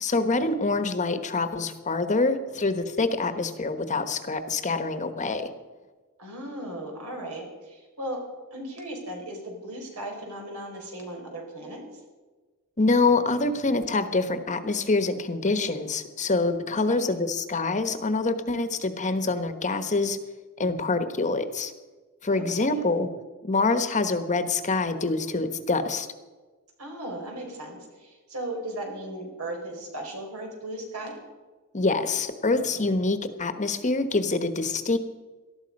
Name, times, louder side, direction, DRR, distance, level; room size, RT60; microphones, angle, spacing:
voice 1, 0.0-5.5 12.8-20.2 20.6-21.7 22.2-23.1 23.4-26.1 31.7-35.0, left 3 dB, 35° left, 9 dB, 1.1 m, -25 dB
voice 2, 6.2-8.2 8.5-11.8 16.7-17.1 22.3-22.8 26.8-31.1, right 1 dB, 80° right, 1 dB, 4.8 m, -37 dB
18.5 x 13.0 x 5.3 m, 1.3 s
head